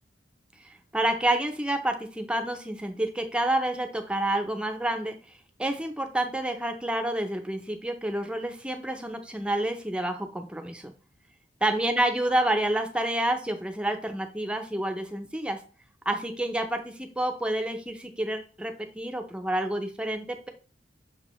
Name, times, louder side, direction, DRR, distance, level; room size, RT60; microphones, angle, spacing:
voice 1, 0.6-5.2 5.6-10.9 11.6-15.6 16.1-20.5, right 1 dB, 5° right, 5 dB, 0.5 m, -29 dB
6.1 x 2.5 x 3.0 m, 0.37 s
head